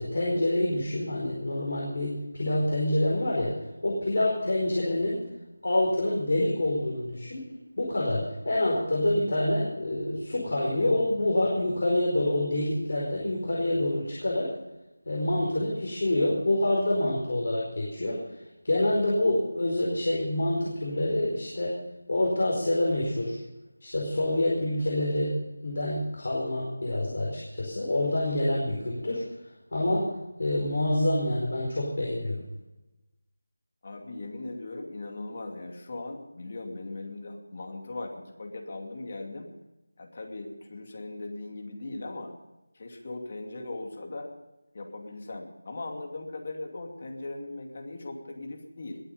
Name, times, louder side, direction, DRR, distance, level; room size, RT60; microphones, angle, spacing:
voice 1, 0.0-3.5 3.8-5.2 5.6-7.5 7.8-14.5 15.0-18.2 18.6-21.7 22.1-23.4 23.8-25.3 25.6-29.2 29.7-30.1 30.4-32.4, left 1 dB, 55° left, -4 dB, 4.7 m, -27 dB
voice 2, 33.8-39.5 40.0-42.3 42.7-44.3 44.7-49.0, left 2 dB, 35° left, 2 dB, 2.6 m, -39 dB
21.0 x 8.9 x 5.4 m, 0.99 s
figure-of-eight pair, 175°, 0 cm